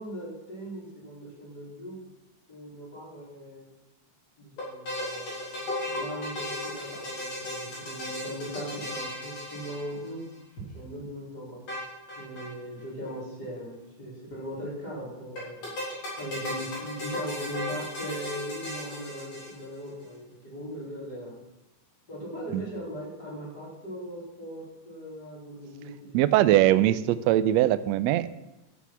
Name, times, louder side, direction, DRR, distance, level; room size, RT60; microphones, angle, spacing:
voice 1, 0.0-2.0 2.5-3.7 4.4-10.2 10.5-11.6 12.2-15.7 16.2-21.4 22.1-26.9, equal, 30° left, -5 dB, 4.3 m, -39 dB
sound 1, 4.6-10.4 11.7-12.5 12.8-12.9 13.0-13.1 15.4-19.9, left 1 dB, 55° left, 4.8 m, -36 dB
voice 2, 26.1-28.3, right 14 dB, 80° right, 14 dB, 1.6 m, -21 dB
13.5 x 8.3 x 5.8 m, 0.95 s
omnidirectional pair, 3.5 m